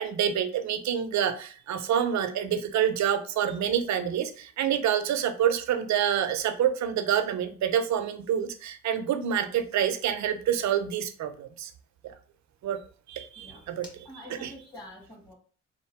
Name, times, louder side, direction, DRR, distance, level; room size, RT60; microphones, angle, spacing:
voice 1, 0.0-11.7 12.0-12.1 12.6-12.8 13.1-13.9 14.3-14.5, right 9 dB, 65° right, 8 dB, 0.7 m, -27 dB
voice 2, 13.4-13.7 14.1-15.3, left 1 dB, 15° left, -2 dB, 2.1 m, -46 dB
3.6 x 2.6 x 4.6 m, 0.41 s
cardioid pair, 90°, 30 cm